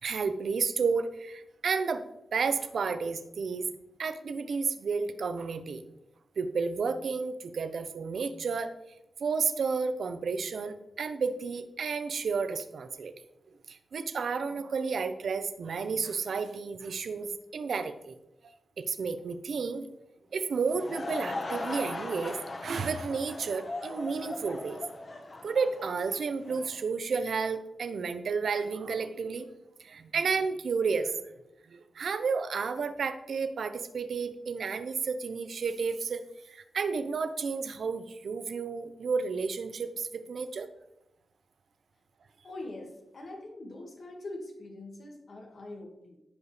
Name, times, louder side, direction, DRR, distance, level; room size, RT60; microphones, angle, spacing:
voice 1, 0.0-2.0 2.3-3.7 4.0-5.8 6.4-8.8 9.2-13.1 13.7-18.1 18.4-19.9 20.3-24.8 25.4-29.5 29.8-31.3 31.7-40.7, right 5 dB, 70° right, 10 dB, 0.8 m, -32 dB
Laughter / Crowd, 20.5-26.8, left 2 dB, 35° left, 1.1 m, -39 dB
voice 2, 42.4-46.2, left 2 dB, 55° left, 0 dB, 1.8 m, -43 dB
15.5 x 5.3 x 3.2 m, 0.88 s
wide cardioid pair, 135°, 0 cm